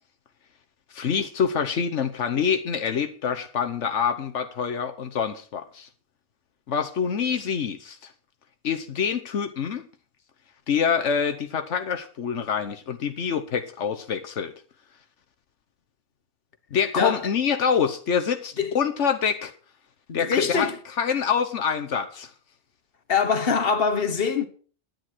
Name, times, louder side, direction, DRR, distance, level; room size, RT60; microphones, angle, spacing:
voice 1, 0.9-5.9 6.7-8.1 8.6-9.9 10.7-14.5 16.7-19.5 20.1-20.7 21.0-22.3, left 7 dB, 80° left, 1.3 m, -26 dB
voice 2, 16.9-17.3 18.6-18.8 20.1-20.8 23.1-24.5, left 5 dB, 55° left, 1.5 m, -23 dB
10.5 x 10.5 x 6.1 m
omnidirectional pair, 1.2 m